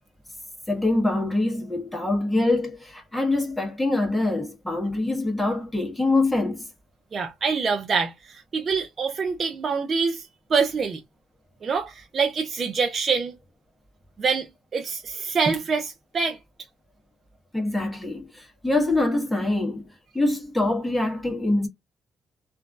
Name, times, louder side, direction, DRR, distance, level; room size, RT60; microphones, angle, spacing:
voice 1, 0.7-6.7 17.5-19.8 20.1-21.7, left 2 dB, 10° left, 1.2 m, -24 dB
voice 2, 7.1-11.0 11.6-13.4 14.2-16.4, right 5 dB, 45° right, 0.5 m, -25 dB
3.0 x 2.5 x 2.3 m
cardioid pair, 90°, 0 cm